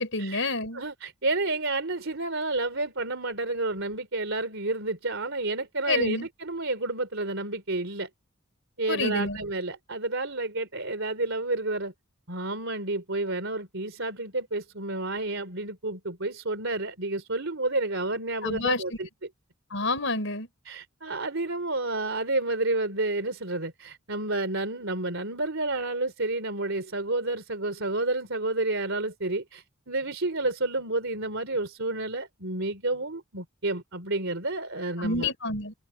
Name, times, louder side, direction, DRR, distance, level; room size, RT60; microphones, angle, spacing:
voice 1, 0.0-0.8 5.9-6.3 8.9-9.4 18.4-18.8 19.7-20.5 35.0-35.7, left 2 dB, 65° left, 6.5 m, -28 dB
voice 2, 0.7-8.1 8.8-11.9 12.3-19.1 20.6-35.3, right 2 dB, 65° right, 4.0 m, -30 dB
head